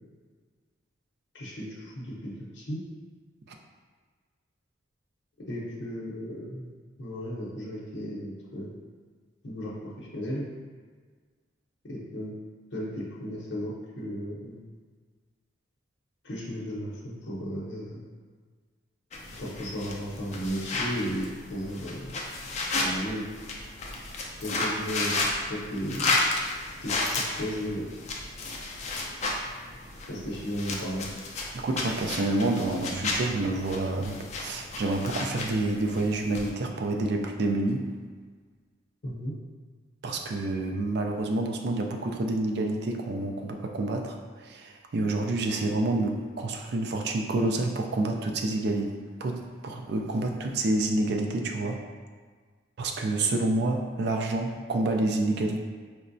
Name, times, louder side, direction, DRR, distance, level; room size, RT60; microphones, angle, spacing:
voice 1, 1.3-2.8 5.5-6.7 7.0-8.8 9.4-10.5 11.8-12.3 12.7-14.6 16.2-18.0 19.4-22.2 22.8-23.3 24.4-26.2 26.8-27.9 30.1-31.1 39.0-39.3, equal, 60° left, -6 dB, 0.7 m, -35 dB
sound 1, 19.1-36.5, left 2 dB, 35° left, 0.4 m, -33 dB
voice 2, 31.5-37.9 40.0-49.0 49.2-51.8 52.8-55.6, right 2 dB, 55° right, 2 dB, 0.4 m, -28 dB
4.5 x 2.1 x 2.6 m, 1.5 s
head